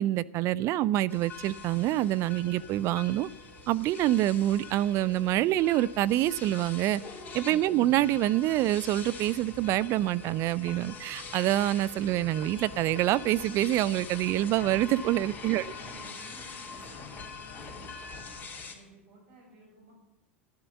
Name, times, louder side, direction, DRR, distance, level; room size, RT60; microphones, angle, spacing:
voice 1, 0.0-3.3 3.7-7.0 7.3-15.6, right 14 dB, 45° right, 21 dB, 0.5 m, -26 dB
sound 1, 1.1-18.8, left 4 dB, 25° left, 3.2 m, -44 dB
voice 2, 15.4-18.3 18.7-19.9, right 1 dB, 65° right, 0 dB, 6.7 m, -55 dB
12.5 x 10.5 x 7.2 m, 1.0 s
hypercardioid pair, 95°, 7 cm